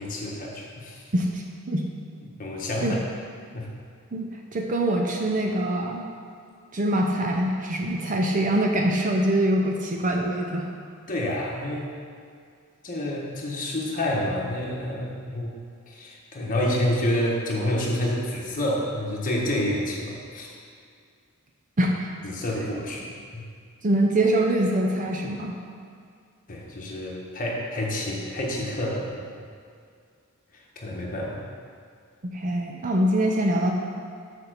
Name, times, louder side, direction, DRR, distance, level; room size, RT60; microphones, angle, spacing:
voice 1, 0.0-1.0 2.4-3.0 3.5-3.7 11.1-11.9 12.8-15.5 15.9-20.6 22.2-23.4 26.5-29.2 30.8-31.4, left 1 dB, 40° left, -3 dB, 1.3 m, -28 dB
voice 2, 1.1-1.9 2.8-3.0 4.1-6.0 6.7-10.7 21.8-21.9 23.8-25.6 32.2-33.7, right 1 dB, 35° right, 1 dB, 0.6 m, -24 dB
6.9 x 4.5 x 6.6 m, 2.3 s
head